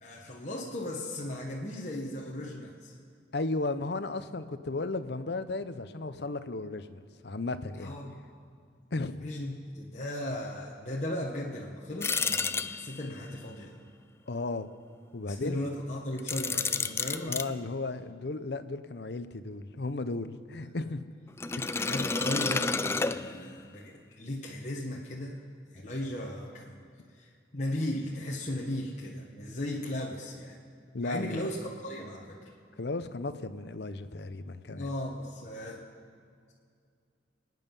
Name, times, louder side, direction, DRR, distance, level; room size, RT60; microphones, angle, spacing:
voice 1, 0.0-2.9 7.8-8.2 9.2-13.7 15.3-17.4 20.5-20.7 21.7-25.4 25.7-26.8 27.1-30.6 31.0-32.5 34.7-35.8, left 1 dB, 40° left, -3 dB, 1.3 m, -36 dB
voice 2, 3.3-8.0 8.9-9.3 14.3-14.7 15.1-15.6 17.3-21.1 21.5-21.7 30.9-31.5 32.8-34.9, left 3 dB, 65° left, 12 dB, 0.7 m, -35 dB
sound 1, 12.0-13.2 16.2-17.5 21.4-23.7, left 4 dB, 15° left, 0.3 m, -30 dB
26.0 x 9.3 x 5.4 m, 2.2 s
head